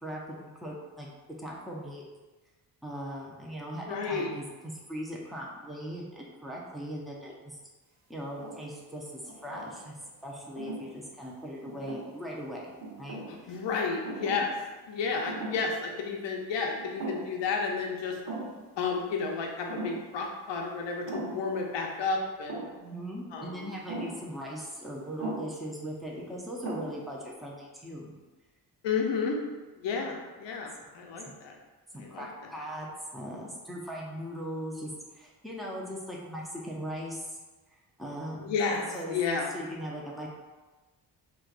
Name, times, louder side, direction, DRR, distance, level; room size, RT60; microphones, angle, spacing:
voice 1, 0.0-1.1 1.4-2.0 2.8-7.6 8.1-9.9 10.2-12.6 13.0-13.2 13.4-13.6 22.7-28.1 31.2-31.3 31.9-32.9 33.1-37.3 38.0-38.5 38.9-39.1 39.5-40.3, equal, ahead, -3 dB, 0.8 m, -39 dB
voice 2, 3.9-4.3 13.3-14.5 14.9-18.2 18.8-22.7 23.3-23.7 28.8-29.4 29.8-31.6 31.9-32.3 38.4-39.5, left 5 dB, 70° left, 1 dB, 0.8 m, -31 dB
sound 1, 8.2-8.8 9.3-10.0 10.6-10.9 11.7-12.4 12.8-13.4 14.0-14.6 14.8-14.9 15.3-15.8 16.1-16.2 16.8-17.5 17.7-17.8 18.3-18.6 19.7-20.1 21.1-21.5 22.5-22.8 23.9-24.2 25.2-25.6 26.2-26.3 26.6-27.1, right 2 dB, 65° right, 1.5 m, -39 dB
4.4 x 2.6 x 2.5 m, 1.2 s
supercardioid pair, 55°, 44 cm